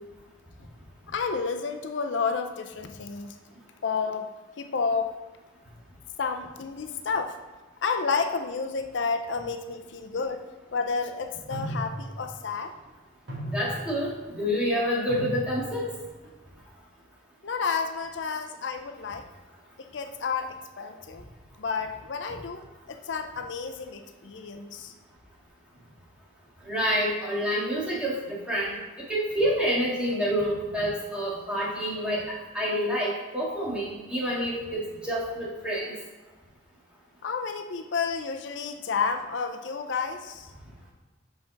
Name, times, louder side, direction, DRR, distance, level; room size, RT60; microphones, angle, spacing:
voice 1, 1.1-3.4 3.8-5.1 6.2-7.4 7.8-10.4 10.7-12.7 17.4-19.3 19.8-21.2 21.6-24.9 37.2-40.5, left 5 dB, 75° left, 6 dB, 0.5 m, -31 dB
sound 1, 10.2-10.3 11.5-12.3 12.6-12.9 13.3-14.2 15.1-15.9 16.2-16.5, equal, 70° right, 1.9 m, -35 dB
voice 2, 13.5-15.9 26.6-28.8 29.1-35.9, equal, 5° right, -7 dB, 1.7 m, -28 dB
5.8 x 5.6 x 3.9 m, 1.2 s
head